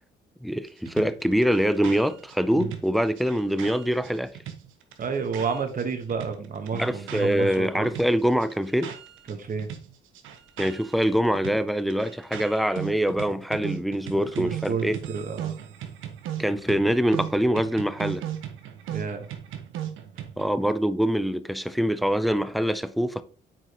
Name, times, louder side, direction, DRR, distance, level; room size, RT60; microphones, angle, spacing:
voice 1, 0.4-4.3 6.7-8.9 10.6-15.0 16.4-18.2 20.4-23.2, equal, ahead, 0.5 m, -24 dB
sound 1, 0.8-5.8 6.1-9.3 9.6-20.5, right 10 dB, 85° right, 0.9 m, -37 dB
voice 2, 5.0-7.9 9.3-9.7 14.1-15.5 18.9-19.3, right 5 dB, 45° right, 1.3 m, -30 dB
7.5 x 4.9 x 3.0 m
cardioid pair, 90°, 20 cm